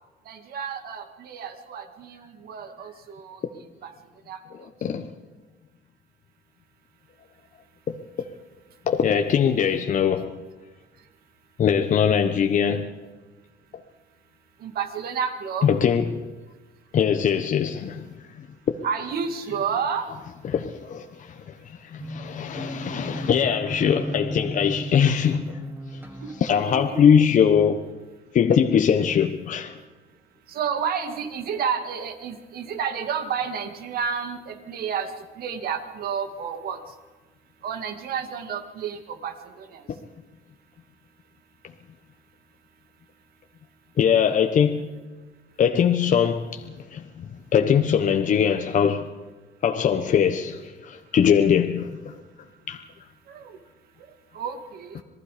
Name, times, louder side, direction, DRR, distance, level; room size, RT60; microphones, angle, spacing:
voice 1, 0.3-3.4 3.8-3.9 4.3-4.4 14.6-15.7 18.8-20.1 26.2-26.3 26.7-27.0 30.5-35.1 35.4-36.8 37.6-39.8 53.3-53.6 54.3-55.0, right 7 dB, 65° right, 2.3 m, -30 dB
voice 2, 8.9-10.3 11.6-12.9 15.6-16.2 16.9-18.0 20.4-25.4 26.4-27.8 28.3-29.8 44.0-44.9 45.6-47.3 47.5-49.1 49.6-52.1 52.7-52.8 54.9-55.0, left 8 dB, 50° left, 1.2 m, -21 dB
sound 1, 22.0-26.5, right 1 dB, 10° right, 1.8 m, -35 dB
26.5 x 19.5 x 5.1 m
cardioid pair, 110°, 17 cm